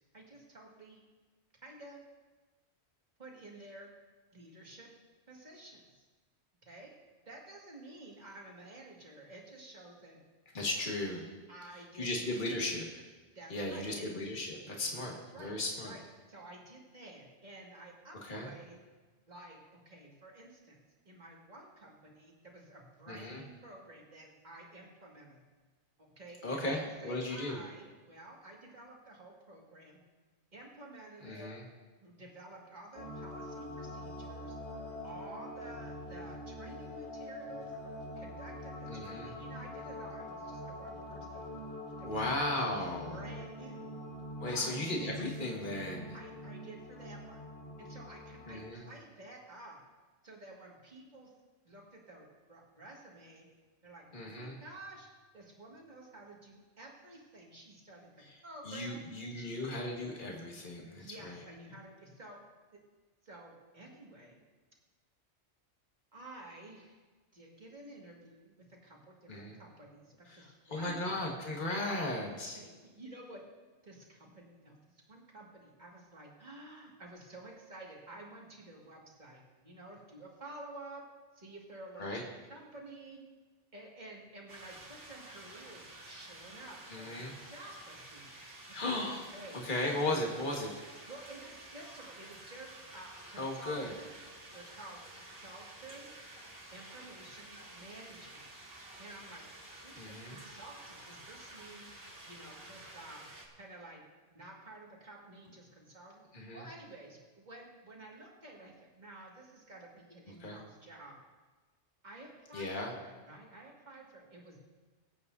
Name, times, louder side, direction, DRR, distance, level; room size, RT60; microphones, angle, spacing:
voice 1, 0.1-1.0 1.6-2.0 3.2-3.9 4.3-4.9 5.3-6.0 6.6-6.9 7.3-10.2 11.5-12.7 13.3-14.1 15.0-15.6 15.8-16.0 16.3-18.2 18.4-18.8 19.3-19.6 19.9-20.8 21.1-25.4 26.0-26.8 27.0-30.0 30.5-31.5 32.0-34.6 35.0-37.7 38.2-41.6 42.0-42.8 43.1-43.8 44.5-44.8 46.1-47.5 47.8-49.8 50.2-51.3 51.6-53.5 53.8-55.1 55.3-59.0 59.4-59.7 60.9-62.4 63.2-64.4 66.1-67.0 67.3-71.2 72.0-72.1 72.5-73.4 73.8-81.0 81.3-83.2 83.7-88.3 88.7-89.9 91.1-94.1 94.5-96.1 96.7-98.5 99.0-99.4 99.8-101.9 102.2-103.3 103.6-104.0 104.3-106.2 106.5-111.1 112.0-114.6, right 2 dB, 40° right, -2 dB, 2.2 m, -51 dB
voice 2, 10.5-11.3 11.9-12.8 13.5-15.9 18.2-18.5 23.1-23.4 26.4-27.6 31.2-31.6 38.9-39.3 42.0-43.2 44.4-46.2 48.5-48.8 54.1-54.6 58.6-61.4 69.3-69.5 70.3-72.6 82.0-82.2 86.9-87.3 88.7-89.2 89.6-90.7 93.4-93.9 100.0-100.4 106.3-106.6 110.4-110.6 112.5-112.9, left 2 dB, 45° left, -1 dB, 1.8 m, -36 dB
sound 1, 33.0-48.7, left 1 dB, 80° left, 1.6 m, -44 dB
sound 2, 84.5-103.5, right 1 dB, 60° right, 1.9 m, -51 dB
23.5 x 8.6 x 2.7 m, 1.3 s
omnidirectional pair, 1.1 m